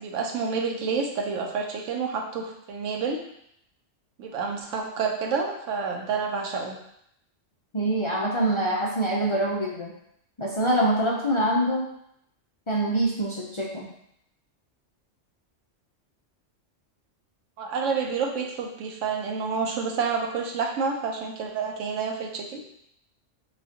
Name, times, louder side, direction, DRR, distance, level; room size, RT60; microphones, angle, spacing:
voice 1, 0.0-3.2 4.2-6.8 17.6-22.6, right 5 dB, 80° right, 2 dB, 1.0 m, -29 dB
voice 2, 7.7-9.9 10.4-11.9 12.7-13.9, right 1 dB, 45° left, -4 dB, 0.4 m, -25 dB
6.2 x 2.3 x 2.8 m, 0.74 s
omnidirectional pair, 1.3 m